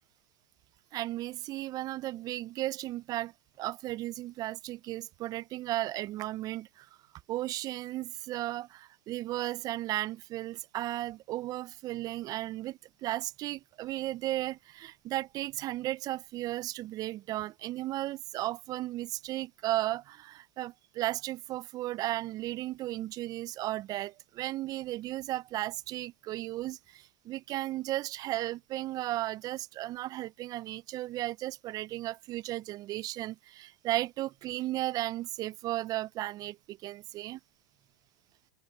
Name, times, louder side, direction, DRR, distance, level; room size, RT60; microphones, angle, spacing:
voice 1, 0.9-3.3 3.6-6.9 7.3-37.4, right 16 dB, 35° right, 0.6 m, -35 dB
hypercardioid pair, 100°, 11 cm